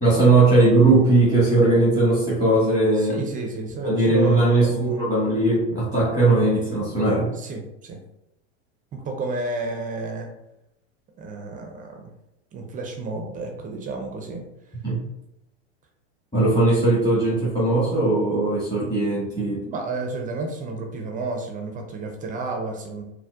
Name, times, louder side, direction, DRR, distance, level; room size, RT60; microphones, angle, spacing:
voice 1, 0.0-3.2 3.8-7.3 14.8-15.0 16.3-19.6, right 2 dB, 15° left, -8 dB, 1.1 m, -19 dB
voice 2, 2.9-5.0 7.3-8.0 8.9-10.3 11.2-12.1 12.5-14.4 19.5-23.0, right 3 dB, 25° right, 3 dB, 0.4 m, -31 dB
4.2 x 2.1 x 2.3 m, 0.88 s
hypercardioid pair, 100°, 37 cm